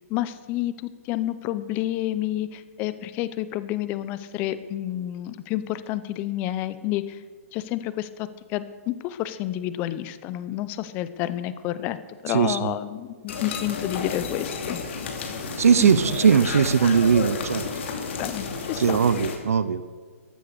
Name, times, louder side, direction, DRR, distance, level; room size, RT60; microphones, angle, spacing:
voice 1, 0.1-7.2 7.5-14.8 15.8-16.0 18.2-19.0, left 13 dB, 25° left, 14 dB, 0.7 m, -29 dB
voice 2, 12.3-12.7 15.6-17.7 18.8-19.8, right 6 dB, 75° right, 14 dB, 0.8 m, -20 dB
sound 1, 13.3-19.4, left 5 dB, 50° left, 2.7 m, -31 dB
14.0 x 11.0 x 6.7 m, 1.6 s
hypercardioid pair, 155°, 8 cm